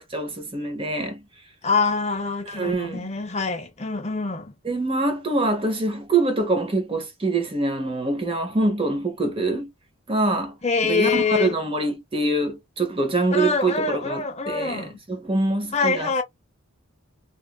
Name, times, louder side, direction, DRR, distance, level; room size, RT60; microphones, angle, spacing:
voice 1, 0.1-1.2 2.5-3.0 4.6-9.7 10.1-10.5 10.8-16.1, right 2 dB, 25° right, 0.6 m, -24 dB
voice 2, 1.6-4.5 10.6-11.6 13.3-14.9 15.7-16.2, left 4 dB, 30° left, 0.6 m, -25 dB
2.8 x 2.4 x 2.2 m
head